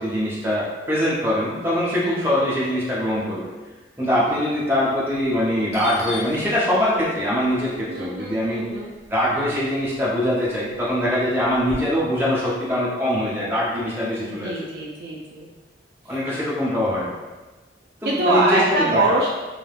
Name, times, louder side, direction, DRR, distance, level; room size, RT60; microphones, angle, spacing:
voice 1, 0.0-3.5 4.0-8.6 9.1-14.5 16.1-17.1 18.0-19.2, left 1 dB, 10° right, -8 dB, 0.6 m, -23 dB
voice 2, 2.0-2.4 7.9-8.9 14.2-15.5 18.0-19.3, right 2 dB, 60° right, -2 dB, 0.3 m, -24 dB
Doorbell, 5.7-9.9 10.2-11.8, left 2 dB, 35° left, 0.4 m, -39 dB
3.0 x 2.1 x 2.4 m, 1.3 s
head